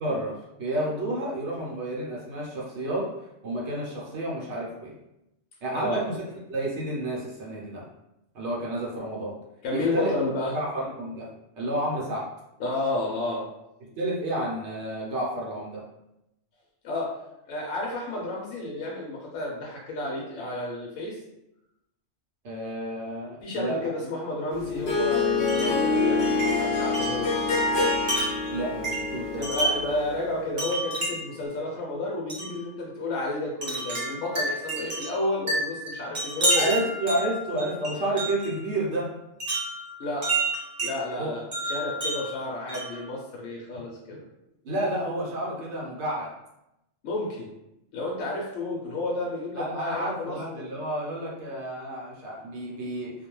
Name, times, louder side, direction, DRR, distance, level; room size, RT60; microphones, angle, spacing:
voice 1, 0.0-3.1 3.4-5.0 5.6-6.2 6.5-7.8 8.3-9.4 9.7-10.1 10.5-11.3 11.5-12.3 13.8-15.8 22.4-24.0 28.5-29.5 36.6-39.1 41.2-41.3 44.6-46.3 49.6-53.1, right 1 dB, 65° right, -4 dB, 0.9 m, -30 dB
voice 2, 9.6-10.5 12.6-13.5 16.8-17.2 17.5-21.2 23.4-27.5 29.4-36.8 40.0-40.5 40.8-44.2 47.0-47.5 47.9-50.8, left 2 dB, 80° left, -3 dB, 0.9 m, -31 dB
Harp, 24.5-30.3, left 4 dB, 50° left, 0.8 m, -26 dB
Wind chime, 25.5-25.9 26.4-30.0 30.6-31.4 32.3-32.6 33.6-38.5 39.4-41.0 41.5-43.0, right 2 dB, 35° right, 0.8 m, -30 dB
2.4 x 2.2 x 3.0 m, 0.88 s
omnidirectional pair, 1.3 m